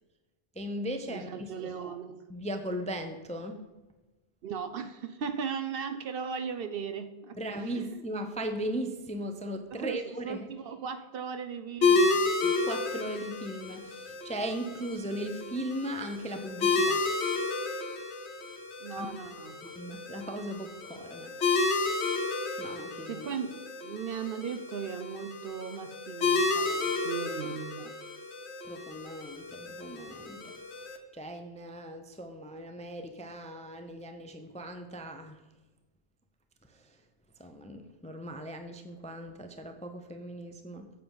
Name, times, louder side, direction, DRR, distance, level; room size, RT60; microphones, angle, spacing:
voice 1, 0.5-1.7 2.3-3.6 7.4-10.5 12.4-17.1 19.0-19.1 19.7-21.4 22.6-23.3 28.6-30.9 31.1-35.4 36.6-37.0 37.4-40.9, right 1 dB, 10° left, 6 dB, 0.4 m, -38 dB
voice 2, 1.1-2.2 4.4-8.0 9.7-12.2 18.8-19.6 23.0-28.0, right 6 dB, 60° right, 10 dB, 0.7 m, -37 dB
sound 1, 11.8-31.0, left 3 dB, 70° left, 1.3 m, -31 dB
9.3 x 7.2 x 3.9 m, 1.2 s
omnidirectional pair, 1.2 m